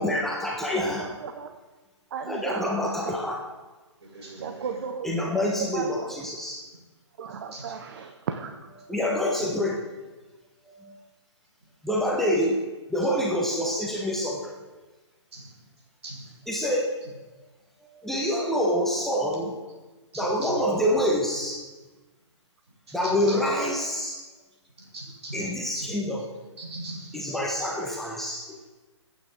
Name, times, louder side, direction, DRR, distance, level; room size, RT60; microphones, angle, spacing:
voice 1, 0.0-1.1 2.3-3.4 5.0-6.6 8.9-9.8 10.8-10.9 11.8-12.6 12.9-14.5 16.5-16.9 17.9-19.5 20.2-21.6 22.9-24.2 25.3-26.2 27.1-28.6, equal, ahead, -3 dB, 1.3 m, -26 dB
voice 2, 1.0-1.5 2.1-3.2 4.4-6.2 7.2-8.6, right 6 dB, 45° right, 6 dB, 0.9 m, -35 dB
voice 3, 4.0-4.7 7.5-7.7 9.3-9.4 15.3-15.5 16.0-16.3 20.1-20.5 22.9-23.4 24.8-25.4 25.8-25.9 26.6-27.2, right 2 dB, 65° right, -2 dB, 5.8 m, -40 dB
23.0 x 9.2 x 3.8 m, 1.2 s
figure-of-eight pair, 130°, 15 cm